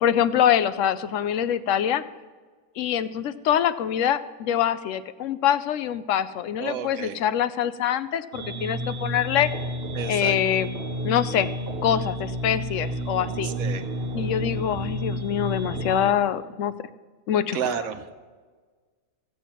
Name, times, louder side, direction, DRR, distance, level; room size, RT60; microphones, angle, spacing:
voice 1, 0.0-2.0 2.8-9.5 10.1-10.7 11.0-11.5 11.8-13.5 14.1-16.7 17.3-17.6, left 10 dB, 70° left, 14 dB, 0.9 m, -24 dB
voice 2, 6.6-7.2 9.9-10.4 13.4-13.8 17.5-18.1, right 7 dB, 80° right, 9 dB, 1.3 m, -31 dB
sound 1, 8.3-16.1, equal, 50° right, 0.9 m, -31 dB
14.5 x 8.7 x 5.8 m, 1.5 s
omnidirectional pair, 1.5 m